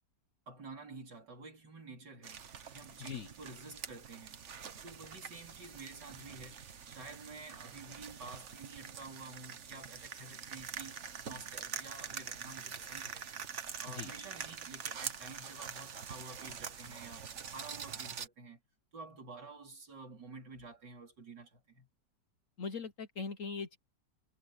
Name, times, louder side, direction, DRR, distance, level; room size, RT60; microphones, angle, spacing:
voice 1, 0.5-4.4 4.8-11.0 11.2-13.3 13.8-18.6 18.9-21.9, right 3 dB, 70° right, 4.4 m, -50 dB
sound 1, 2.2-18.3, right 7 dB, 45° right, 1.3 m, -45 dB
voice 2, 22.6-23.8, left 5 dB, 50° left, 1.2 m, -40 dB
omnidirectional pair, 2.0 m